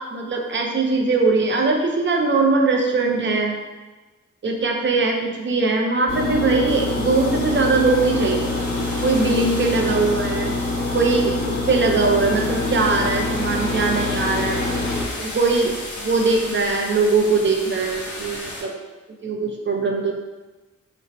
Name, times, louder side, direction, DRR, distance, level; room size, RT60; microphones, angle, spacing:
voice 1, 0.0-3.6 4.4-8.6 9.0-10.6 10.9-14.7 15.2-18.7 19.2-20.1, right 3 dB, 35° right, 1 dB, 0.5 m, -21 dB
sound 1, 6.1-15.1, left 2 dB, 30° left, 0.8 m, -25 dB
sound 2, 6.7-18.6, left 1 dB, 65° left, 0.7 m, -35 dB
2.5 x 2.1 x 4.0 m, 1.2 s
wide cardioid pair, 95°, 32 cm